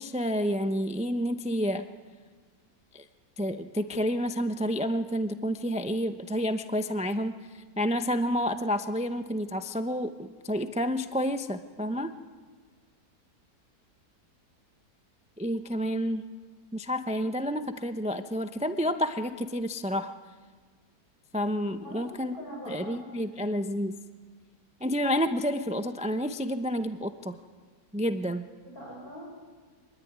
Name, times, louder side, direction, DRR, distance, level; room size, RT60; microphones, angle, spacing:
voice 1, 0.0-1.9 2.9-3.1 3.4-12.1 15.4-16.2 16.7-20.1 21.3-22.3 22.7-24.0 24.8-27.4 27.9-28.5, equal, 10° right, 8 dB, 0.4 m, -29 dB
voice 2, 21.8-23.6 28.6-29.3, equal, 55° left, -4 dB, 7.5 m, -43 dB
25.5 x 20.5 x 9.5 m, 1.5 s
omnidirectional pair, 1.8 m